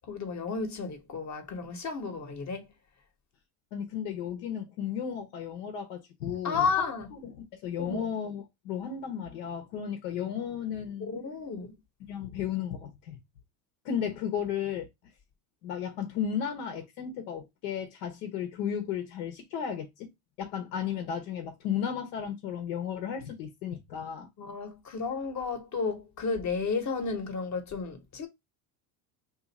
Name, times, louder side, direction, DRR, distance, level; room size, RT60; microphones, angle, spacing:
voice 1, 0.1-2.7 6.4-7.1 7.8-8.1 11.0-11.7 24.4-28.3, left 5 dB, 40° left, 1.0 m, -32 dB
voice 2, 3.7-6.7 7.1-11.1 12.1-13.2 13.8-14.9 15.6-20.1 20.4-24.3, left 8 dB, 80° left, 1.0 m, -34 dB
2.6 x 2.6 x 3.9 m
supercardioid pair, 95°, 46 cm